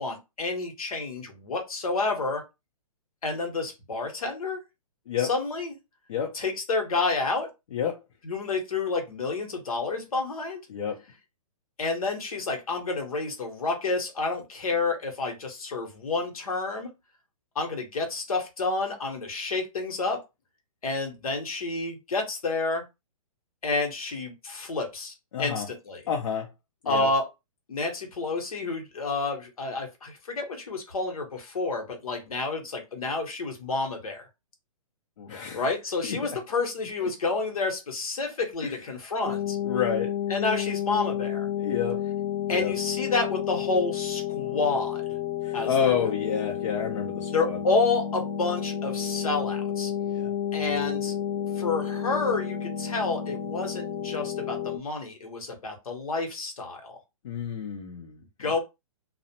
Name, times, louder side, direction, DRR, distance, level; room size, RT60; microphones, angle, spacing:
voice 1, 0.0-2.4 3.2-4.6 5.2-5.7 6.3-7.5 8.2-10.6 11.8-16.9 17.5-20.2 20.8-22.8 23.6-26.0 26.9-27.3 27.7-34.3 35.5-39.6 40.3-41.5 42.5-45.0 45.5-45.9 47.3-49.9 50.5-51.2 51.5-57.0 58.4-58.6, left 3 dB, 75° left, 1.0 m, -29 dB
voice 2, 10.7-11.0 25.3-25.7 26.1-26.5 26.8-27.1 35.2-35.6 36.0-36.4 38.6-38.8 39.6-40.2 41.6-42.0 42.5-42.7 45.4-47.6 50.1-50.4 57.2-58.2, left 7 dB, 55° left, 0.6 m, -29 dB
sound 1, 39.2-54.8, left 9 dB, 15° left, 0.3 m, -31 dB
2.4 x 2.0 x 2.8 m
hypercardioid pair, 130°, 19 cm